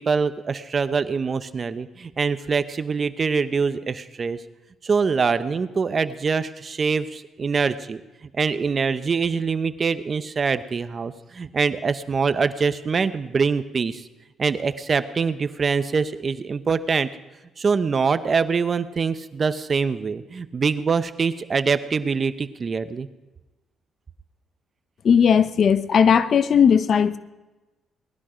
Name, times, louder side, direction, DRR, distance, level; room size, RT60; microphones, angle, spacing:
voice 1, 0.0-4.4 4.8-14.1 14.4-17.1 17.6-23.1, right 5 dB, 40° right, 0.9 m, -24 dB
voice 2, 25.0-27.2, left 7 dB, 55° left, 0.7 m, -17 dB
19.5 x 12.5 x 5.0 m
cardioid pair, 90°, 0 cm